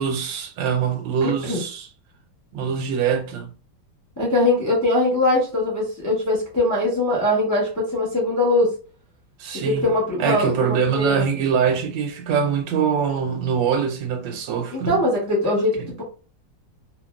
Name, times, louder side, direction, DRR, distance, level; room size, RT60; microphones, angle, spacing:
voice 1, 0.0-1.9 2.5-3.5 9.4-9.9 10.2-15.0, right 7 dB, 85° right, 1.3 m, -23 dB
voice 2, 4.2-8.7 9.6-11.3 14.7-16.0, left 1 dB, 20° left, 0.5 m, -21 dB
2.8 x 2.6 x 2.2 m
omnidirectional pair, 2.0 m